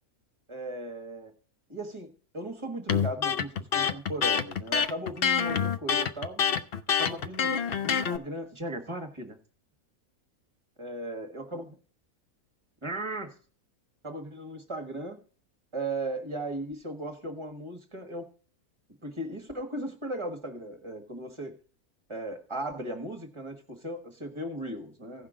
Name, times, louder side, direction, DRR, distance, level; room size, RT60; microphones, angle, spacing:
voice 1, 0.5-1.3 1.7-6.6 7.0-7.6 7.8-9.4 10.8-11.8 12.8-13.4 14.0-15.2 15.7-18.3 19.0-21.5 22.1-25.3, right 1 dB, 20° right, 5 dB, 1.5 m, -37 dB
Electric guitar, 2.9-8.2, left 7 dB, 55° left, 0.7 m, -26 dB
16.5 x 5.8 x 3.7 m, 0.41 s
omnidirectional pair, 1.5 m